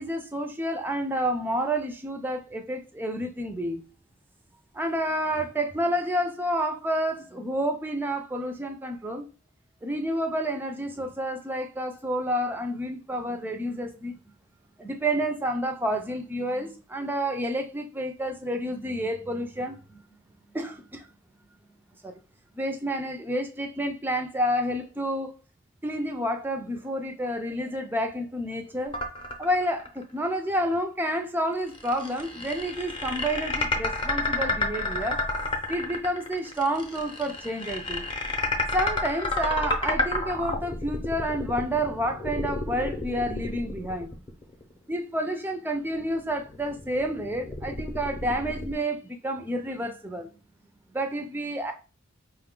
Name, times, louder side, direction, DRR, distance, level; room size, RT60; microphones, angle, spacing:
voice 1, 0.0-3.8 4.7-9.3 9.8-14.2 14.8-20.0 20.5-21.1 22.0-22.1 22.6-25.3 25.8-28.9 29.4-35.2 35.7-38.1 38.7-44.1 44.9-50.3 50.9-51.7, equal, 10° right, 0.3 m, -29 dB
sound 1, 28.9-30.0 30.4-30.5 31.7-44.7 45.9-48.7, left 2 dB, 25° left, 0.6 m, -30 dB
4.8 x 2.3 x 3.6 m
head